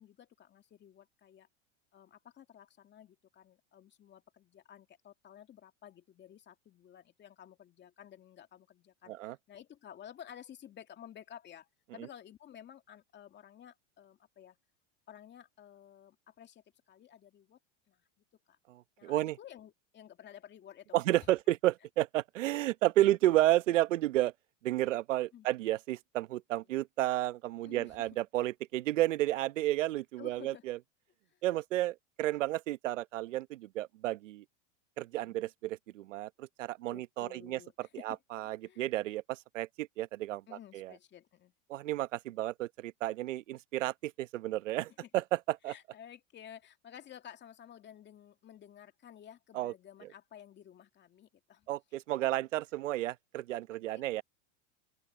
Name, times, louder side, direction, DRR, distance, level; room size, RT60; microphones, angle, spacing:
voice 1, 0.0-1.5 1.9-14.6 15.1-17.6 17.9-18.1 18.5-18.6 19.0-21.0 23.0-23.1 25.3-25.5 26.5-26.6 27.6-28.1 30.2-30.6 31.3-31.4 33.3-33.4 35.2-35.4 36.9-38.9 40.5-41.5 45.0-45.1 45.7-51.7 52.2-52.3 53.7-54.2, left 10 dB, 30° left, 2.4 m, -53 dB
voice 2, 18.7-19.4 20.9-24.3 24.6-30.8 31.4-34.4 35.0-40.4 40.7-40.9 41.7-45.7 49.5-49.7 51.7-54.2, right 15 dB, 85° right, 1.0 m, -32 dB
open air
supercardioid pair, 120°, 36 cm